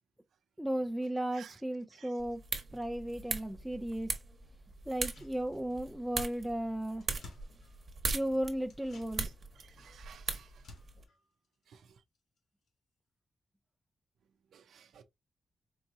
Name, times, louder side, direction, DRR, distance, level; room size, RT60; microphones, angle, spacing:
voice 1, 0.6-2.4 2.7-4.2 4.9-7.1 8.1-9.3, right 1 dB, 5° right, 0.4 m, -35 dB
sound 1, 2.2-11.0, right 4 dB, 40° right, 1.0 m, -40 dB
sound 2, 4.9-6.0 6.3-6.4 6.7-8.2 8.6-12.4 12.7-12.8, left 3 dB, 70° left, 1.6 m, -58 dB
voice 2, 9.6-10.6 11.7-12.0 14.5-15.0, right 8 dB, 90° right, 0.5 m, -55 dB
4.5 x 3.0 x 2.6 m
wide cardioid pair, 155°, 0 cm